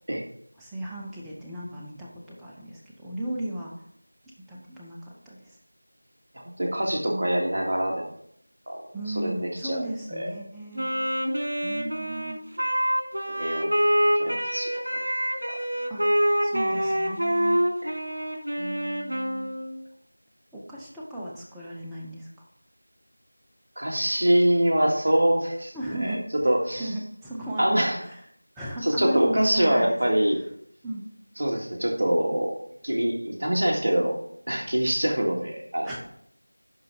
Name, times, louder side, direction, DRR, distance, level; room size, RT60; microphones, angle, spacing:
voice 1, 0.6-3.7 4.5-5.6 7.1-7.3 8.9-10.9 11.6-12.4 15.9-16.0 16.4-17.6 18.6-19.5 20.5-22.4 25.7-26.2 26.7-28.2 28.6-30.2 30.8-31.0 35.8-36.0, right 1 dB, ahead, -7 dB, 0.7 m, -36 dB
voice 2, 6.3-8.1 8.7-8.8 9.2-9.3 9.6-10.3 13.4-13.7 14.2-15.0 15.5-15.6 17.8-17.9 23.8-25.7 26.0-26.2 26.4-26.9 27.6-28.0 28.8-30.4 31.4-32.5 32.8-34.2 34.5-35.9, right 1 dB, 45° right, -1 dB, 2.0 m, -24 dB
Wind instrument woodwind instrument, 10.8-19.7, equal, 75° right, 3.1 m, -26 dB
11.0 x 4.0 x 6.9 m, 0.69 s
figure-of-eight pair, 175°, 0 cm